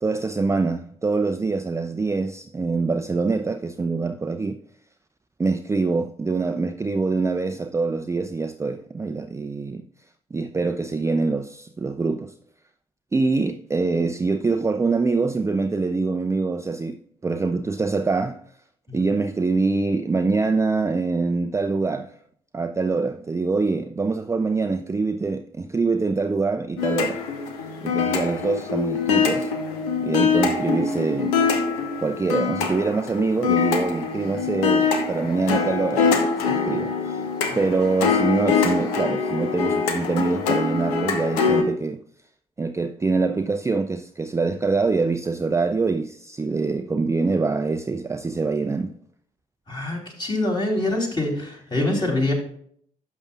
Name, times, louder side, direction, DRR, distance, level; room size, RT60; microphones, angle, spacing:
voice 1, 0.0-4.6 5.4-9.8 10.3-12.3 13.1-18.4 18.9-22.1 22.5-27.2 27.8-29.5 30.0-31.4 32.0-37.2 37.5-42.0 42.6-48.9, right 3 dB, 15° right, 0.5 m, -24 dB
sound 1, 26.8-41.6, left 5 dB, 75° left, 1.0 m, -24 dB
voice 2, 49.7-52.3, left 2 dB, 25° left, 3.4 m, -25 dB
11.5 x 7.2 x 2.4 m
figure-of-eight pair, 45°, 19 cm